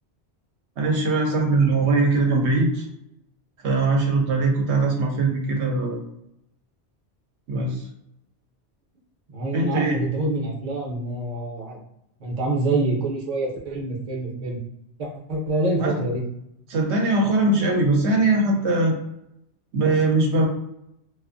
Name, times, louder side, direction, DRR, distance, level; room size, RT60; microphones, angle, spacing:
voice 1, 0.8-2.9 3.6-6.0 7.5-7.8 9.5-10.0 15.8-15.9 16.7-18.9 19.7-20.5, right 2 dB, 80° right, 1 dB, 0.9 m, -21 dB
voice 2, 9.3-11.8 12.2-14.6 15.0-16.2, right 2 dB, 50° right, -1 dB, 0.7 m, -26 dB
2.4 x 2.3 x 2.5 m, 0.79 s
omnidirectional pair, 1.1 m